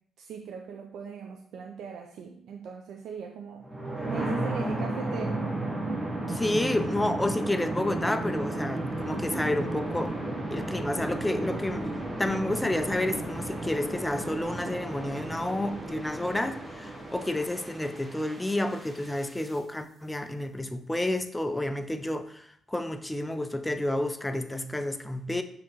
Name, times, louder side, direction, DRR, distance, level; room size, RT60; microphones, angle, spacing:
voice 1, 0.2-3.7 3.9-5.6, right 6 dB, 75° right, 0.4 m, -40 dB
sound 1, 3.6-19.5, right 2 dB, 10° right, 1.0 m, -34 dB
voice 2, 6.3-10.2 10.5-11.9 12.2-25.4, left 1 dB, 10° left, 0.4 m, -30 dB
6.2 x 2.9 x 2.9 m
cardioid pair, 90°, 0 cm